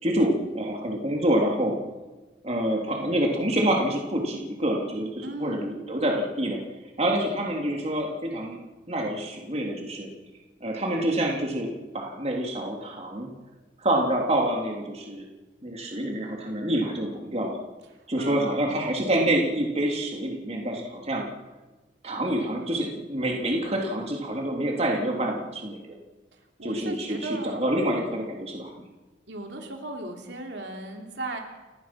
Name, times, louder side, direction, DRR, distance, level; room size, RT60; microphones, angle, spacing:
voice 1, 0.0-1.8 2.4-6.6 7.0-8.6 8.9-10.1 10.6-13.3 13.8-15.2 15.6-17.6 18.1-21.3 22.0-25.9 26.6-28.7, right 1 dB, 35° right, 0 dB, 3.1 m, -27 dB
voice 2, 5.2-5.7 18.2-18.9 26.6-27.6 29.3-31.4, right 2 dB, 70° right, 2 dB, 3.4 m, -36 dB
29.5 x 17.0 x 6.1 m, 1.2 s
head